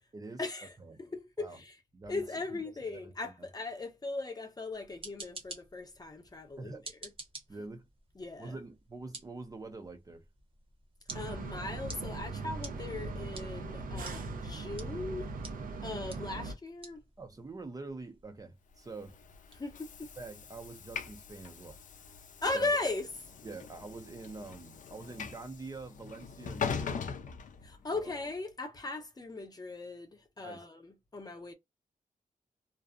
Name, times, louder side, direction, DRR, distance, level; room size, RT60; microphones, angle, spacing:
voice 1, 0.4-0.7 1.0-1.7 2.1-7.1 8.2-8.6 11.1-15.3 15.8-17.0 19.5-20.1 22.4-23.1 27.6-31.5, left 3 dB, 30° left, 0.6 m, -38 dB
voice 2, 1.9-2.2 2.8-3.5 6.6-6.9 7.5-7.8 8.4-10.2 17.2-19.2 20.2-21.8 22.5-22.7 23.4-27.0 27.9-28.1 30.4-30.6, right 3 dB, 25° right, 0.4 m, -45 dB
sound 1, 4.7-21.5, right 3 dB, 40° right, 0.8 m, -52 dB
sound 2, 11.1-16.5, right 3 dB, 80° right, 0.5 m, -39 dB
Train / Sliding door, 18.9-28.2, left 6 dB, 65° left, 0.4 m, -42 dB
2.5 x 2.0 x 2.4 m
wide cardioid pair, 135°, 14 cm